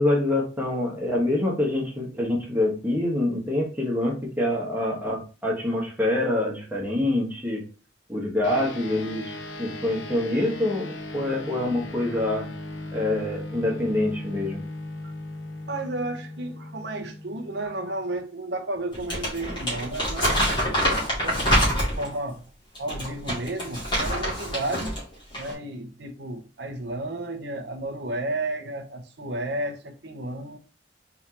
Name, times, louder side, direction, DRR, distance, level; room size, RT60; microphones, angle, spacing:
voice 1, 0.0-7.6 8.1-12.5 12.9-14.6, left 1 dB, 10° right, 1.4 m, -26 dB
sound 1, 8.4-18.2, left 2 dB, 85° left, 0.9 m, -38 dB
voice 2, 15.7-20.8 21.2-22.5 22.8-25.0 25.4-30.6, right 2 dB, 65° right, 0.9 m, -32 dB
Crumpling crinkling, 18.9-22.2 22.8-25.0 25.3-25.5, equal, 25° left, 2.2 m, -25 dB
4.5 x 3.6 x 2.9 m
head